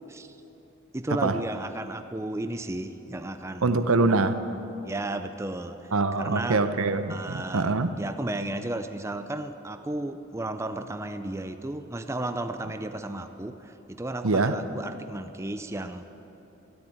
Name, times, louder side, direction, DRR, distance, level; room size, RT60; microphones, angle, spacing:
voice 1, 0.9-3.8 4.8-6.6 7.1-16.1, right 1 dB, 15° right, 8 dB, 0.5 m, -34 dB
voice 2, 3.6-4.4 5.9-7.9 14.2-14.6, right 3 dB, 85° right, 11 dB, 0.8 m, -24 dB
13.5 x 11.5 x 8.8 m, 3.0 s
head